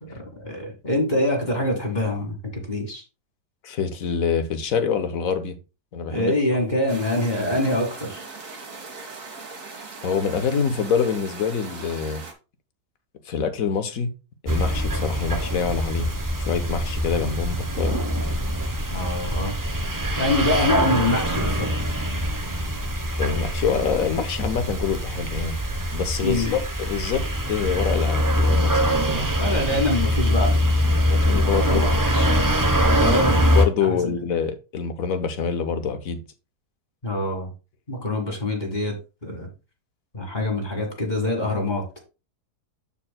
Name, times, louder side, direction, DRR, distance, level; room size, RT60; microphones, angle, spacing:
voice 1, 0.0-3.0 6.1-8.2 18.9-19.5 20.1-21.7 26.2-26.6 29.4-30.6 31.7-31.9 33.0-33.4 33.8-34.1 37.0-37.5 37.9-38.9 39.2-39.5 40.1-41.8, left 1 dB, 30° left, 1.9 m, -25 dB
voice 2, 3.6-5.6 5.9-6.3 10.0-12.2 13.3-14.1 14.4-16.1 16.4-18.0 23.2-25.6 25.9-29.3 31.1-31.9 32.1-32.3 33.6-36.2, left 6 dB, 65° left, 1.3 m, -26 dB
sound 1, 6.9-12.3, right 3 dB, 55° right, 1.8 m, -39 dB
sound 2, 14.5-33.6, equal, 25° right, 0.4 m, -23 dB
13.0 x 4.5 x 2.2 m
omnidirectional pair, 1.7 m